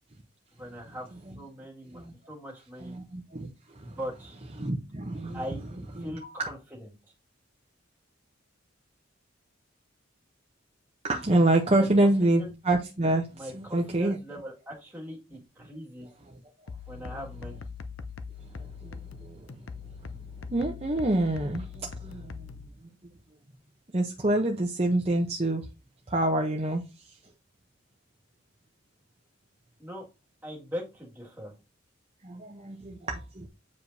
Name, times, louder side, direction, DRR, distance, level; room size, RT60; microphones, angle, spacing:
voice 1, 0.6-1.1 1.3-2.0 2.3-3.0 3.8-4.4 5.3-5.6 6.0-6.9 11.8-12.1 12.4-12.5 13.3-16.1 16.9-17.7 29.8-30.1 30.4-31.5, equal, 10° right, 2.0 m, -40 dB
voice 2, 2.8-3.5 3.8-4.0 4.6-5.4 6.0-6.3 11.0-14.2 18.6-19.5 20.5-22.5 23.9-25.7 26.1-27.2 32.2-33.5, right 1 dB, 30° right, 0.8 m, -27 dB
sound 1, 16.7-22.7, left 5 dB, 75° left, 0.6 m, -42 dB
8.3 x 5.0 x 2.7 m
head